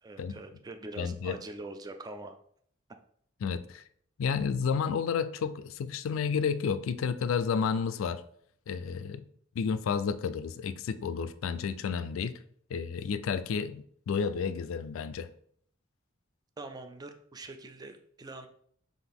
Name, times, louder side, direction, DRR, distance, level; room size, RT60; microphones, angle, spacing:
voice 1, 0.0-2.4 16.6-18.5, right 2 dB, 20° right, 6 dB, 0.3 m, -43 dB
voice 2, 1.0-1.4 3.4-3.8 4.2-8.2 8.7-9.3 9.6-12.4 12.7-15.3, left 6 dB, 80° left, 14 dB, 0.3 m, -31 dB
5.9 x 2.5 x 3.5 m, 0.64 s
head